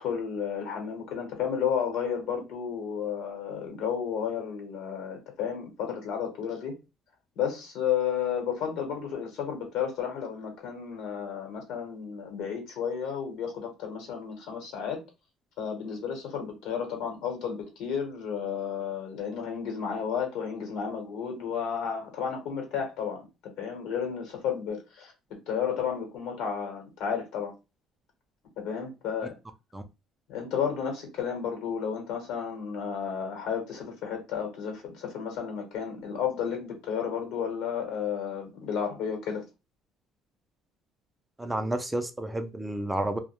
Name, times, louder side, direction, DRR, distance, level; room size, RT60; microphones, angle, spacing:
voice 1, 0.0-6.7 7.4-15.0 15.6-23.2 23.6-25.1 25.5-27.5 28.6-29.3 30.3-39.5, left 7 dB, 80° left, 0.9 m, -32 dB
voice 2, 41.4-43.2, right 1 dB, 10° right, 0.3 m, -30 dB
2.2 x 2.1 x 3.0 m
cardioid pair, 135°, 0 cm